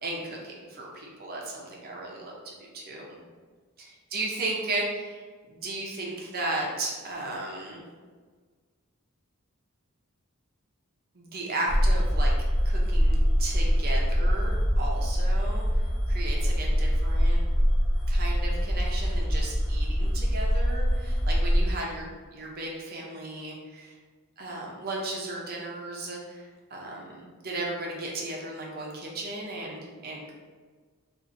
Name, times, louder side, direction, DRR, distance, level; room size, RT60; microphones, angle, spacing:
voice 1, 0.0-3.2 4.1-5.2 5.5-7.8 11.1-12.3 12.6-15.7 16.1-17.4 18.1-23.9 24.4-30.3, right 2 dB, 45° right, -2 dB, 0.6 m, -35 dB
sound 1, 11.7-21.7, equal, 35° left, 0.8 m, -24 dB
4.0 x 2.6 x 2.6 m, 1.5 s
head